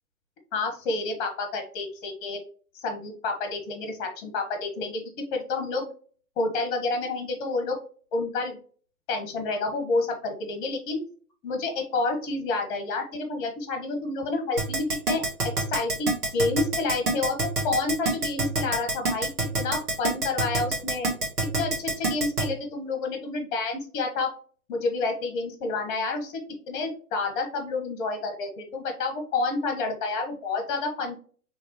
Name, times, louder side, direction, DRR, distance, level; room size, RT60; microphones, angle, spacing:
voice 1, 0.5-2.4 2.7-5.0 5.3-5.8 6.4-7.8 8.1-8.6 9.1-11.0 11.4-15.2 15.7-19.3 19.6-21.1 21.5-24.3 24.7-26.4 26.7-31.1, left 3 dB, 35° left, 4 dB, 1.6 m, -29 dB
Keyboard (musical), 14.6-22.4, right 2 dB, 70° right, 1.8 m, -25 dB
4.0 x 3.7 x 2.9 m, 0.43 s
figure-of-eight pair, 120°, 46 cm